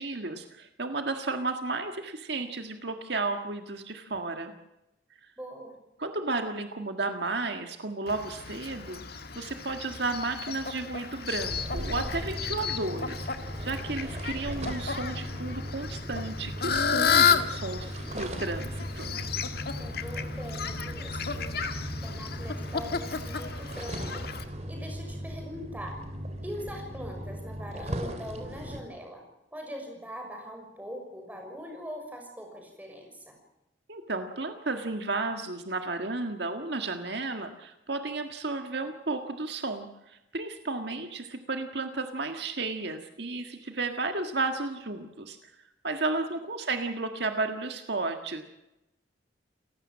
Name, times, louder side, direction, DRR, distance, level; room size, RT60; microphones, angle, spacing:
voice 1, 0.0-4.5 6.0-13.3 13.6-19.2 33.9-45.4 45.8-48.4, right 3 dB, 60° right, 6 dB, 1.7 m, -33 dB
voice 2, 5.4-5.8 19.8-21.5 22.0-26.0 26.4-29.2 29.5-33.3, equal, 10° right, 2 dB, 6.4 m, -42 dB
Fowl, 8.1-24.4, left 6 dB, 55° left, 1.8 m, -32 dB
sound 1, 11.4-28.8, equal, 35° right, 3.3 m, -38 dB
29.5 x 16.0 x 7.5 m, 0.92 s
head